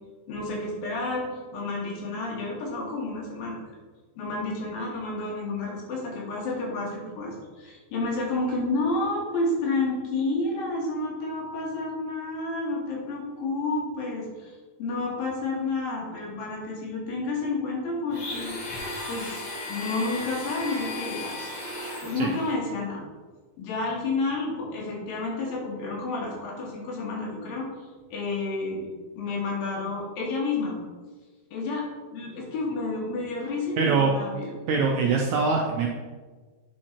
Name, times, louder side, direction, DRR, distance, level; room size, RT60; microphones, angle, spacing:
voice 1, 0.3-3.6 4.2-21.5 22.0-23.0 23.6-27.7 28.1-28.9 29.1-30.8 31.5-31.8 32.1-34.5, left 3 dB, 80° left, -2 dB, 3.4 m, -30 dB
Domestic sounds home sounds, 18.1-22.5, left 2 dB, 60° left, 1.2 m, -35 dB
voice 2, 33.8-34.1 34.7-35.9, right 5 dB, 80° right, 0 dB, 1.7 m, -23 dB
8.7 x 4.7 x 4.3 m, 1.4 s
omnidirectional pair, 4.1 m